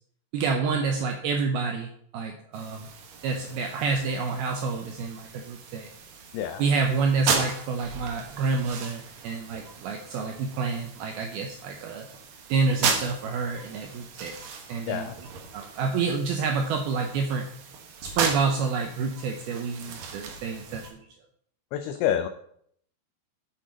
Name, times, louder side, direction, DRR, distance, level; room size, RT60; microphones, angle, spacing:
voice 1, 0.3-2.9 3.2-5.9 6.6-12.1 12.5-15.1 15.5-17.5 18.0-21.1, right 4 dB, 85° right, 3 dB, 2.2 m, -28 dB
sound 1, 2.5-20.9, right 5 dB, 65° right, 2.2 m, -36 dB
voice 2, 14.9-15.2 21.7-22.3, left 10 dB, 90° left, 8 dB, 2.3 m, -27 dB
7.5 x 6.5 x 5.1 m, 0.66 s
omnidirectional pair, 5.2 m